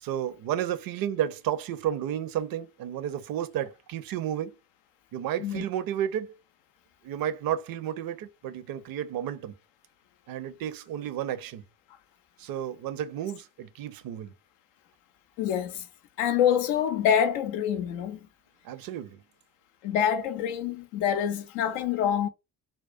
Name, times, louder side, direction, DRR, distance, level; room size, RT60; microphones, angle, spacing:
voice 1, 0.0-4.5 5.1-6.3 7.0-9.5 10.3-11.6 12.4-14.3 18.6-19.2, right 10 dB, 50° right, 0.5 m, -32 dB
voice 2, 15.4-15.9 16.2-18.2 19.8-22.3, left 9 dB, 75° left, 0.6 m, -26 dB
2.3 x 2.1 x 2.4 m
hypercardioid pair, 40°, 48 cm